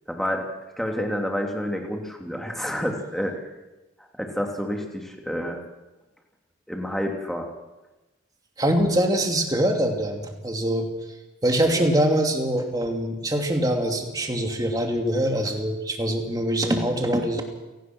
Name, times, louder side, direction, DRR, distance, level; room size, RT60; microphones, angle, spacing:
voice 1, 0.1-0.5 0.8-3.5 4.2-5.6 6.7-7.5, equal, ahead, 2 dB, 2.9 m, -29 dB
voice 2, 8.6-10.9 11.4-17.4, right 1 dB, 20° right, 2 dB, 2.9 m, -23 dB
28.5 x 18.0 x 6.3 m, 1.1 s
head